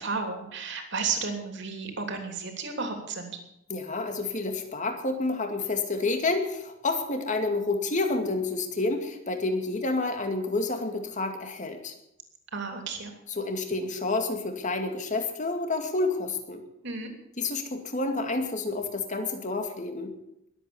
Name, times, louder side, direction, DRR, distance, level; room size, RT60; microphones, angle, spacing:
voice 1, 0.0-3.4 12.5-13.1 16.8-17.1, right 4 dB, 60° right, 4 dB, 3.2 m, -33 dB
voice 2, 3.7-11.9 13.4-16.6 17.4-20.1, left 3 dB, 40° left, 5 dB, 2.3 m, -29 dB
21.0 x 8.5 x 7.1 m, 0.81 s
head